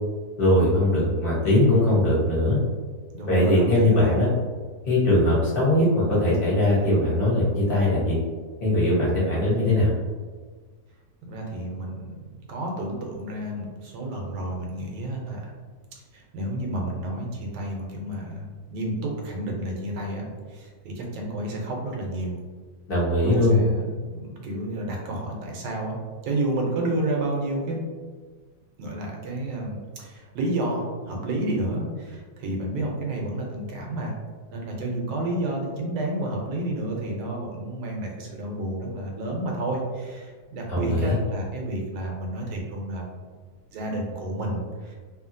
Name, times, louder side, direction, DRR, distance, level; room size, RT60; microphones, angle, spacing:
voice 1, 0.4-2.6 3.3-4.3 4.9-8.2 8.6-9.9 22.9-23.6 40.7-41.2, left 1 dB, 40° left, -7 dB, 0.9 m, -20 dB
voice 2, 3.1-4.2 11.3-12.1 12.5-15.5 16.1-22.4 23.2-26.0 26.2-27.8 28.8-34.1 34.5-43.0 43.7-44.9, right 1 dB, 75° right, 0 dB, 1.2 m, -30 dB
2.8 x 2.7 x 2.5 m, 1.5 s
omnidirectional pair, 1.9 m